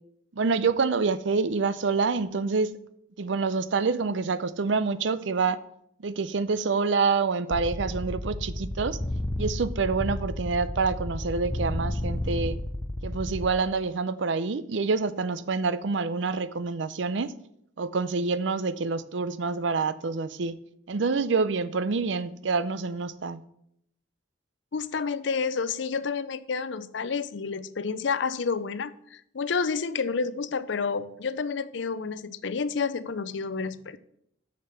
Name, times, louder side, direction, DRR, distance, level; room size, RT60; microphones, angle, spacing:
voice 1, 0.4-2.7 3.2-5.6 6.0-9.0 9.4-12.6 13.0-17.3 17.8-20.6 20.9-23.4, right 4 dB, 65° right, 0.5 m, -27 dB
sound 1, 7.5-13.5, left 1 dB, 15° left, 0.5 m, -32 dB
voice 2, 24.7-34.0, left 5 dB, 65° left, 0.5 m, -30 dB
6.7 x 6.7 x 6.8 m
head